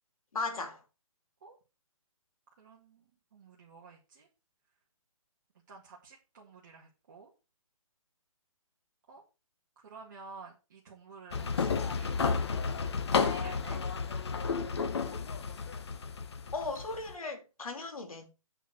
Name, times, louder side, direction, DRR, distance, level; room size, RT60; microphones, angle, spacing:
voice 1, 0.3-0.8 16.5-18.3, left 3 dB, 80° left, 3.0 m, -37 dB
voice 2, 2.6-3.0 3.3-4.3 5.7-7.3 9.1-9.2 9.8-12.2 13.1-13.8, right 4 dB, 30° right, 2.0 m, -51 dB
sound 1, 11.3-17.1, left 5 dB, 50° left, 1.1 m, -32 dB
8.9 x 4.6 x 6.2 m
hypercardioid pair, 175°, 18 cm